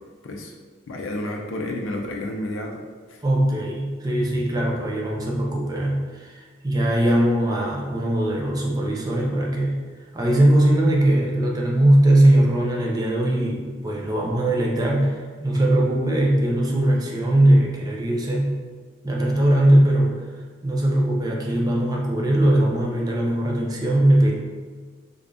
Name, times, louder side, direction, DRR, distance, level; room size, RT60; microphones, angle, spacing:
voice 1, 0.2-0.5 0.9-2.8 3.1-3.2, left 1 dB, 85° left, 0 dB, 0.4 m, -30 dB
voice 2, 3.2-9.7 10.1-18.6 19.0-20.1 20.6-24.3, right 1 dB, 20° right, -2 dB, 0.5 m, -20 dB
3.4 x 3.3 x 2.5 m, 1.5 s
head